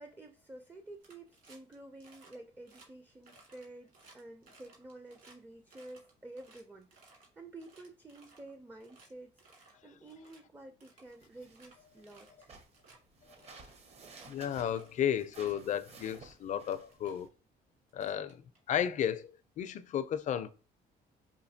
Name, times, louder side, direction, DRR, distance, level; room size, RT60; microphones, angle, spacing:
voice 1, 0.0-12.5, right 2 dB, 15° right, 0.4 m, -51 dB
sound 1, 1.0-1.7 2.0-2.4 2.7-2.9 3.2-5.4 5.7-7.3 7.6-8.5 8.8-9.1 9.4-9.8 10.1-10.4 10.8-11.7 12.1-12.5 12.7-13.0 13.4-14.3 14.7-14.9 15.3-15.7 16.5-16.6 16.9-17.2 17.9-18.8, right 3 dB, 55° right, 1.9 m, -60 dB
sound 2, 11.1-17.3, right 4 dB, 40° right, 0.8 m, -56 dB
voice 2, 14.3-17.3 17.9-18.4 18.7-20.5, left 9 dB, 45° left, 0.4 m, -33 dB
5.0 x 2.6 x 2.7 m
cardioid pair, 110°, 17 cm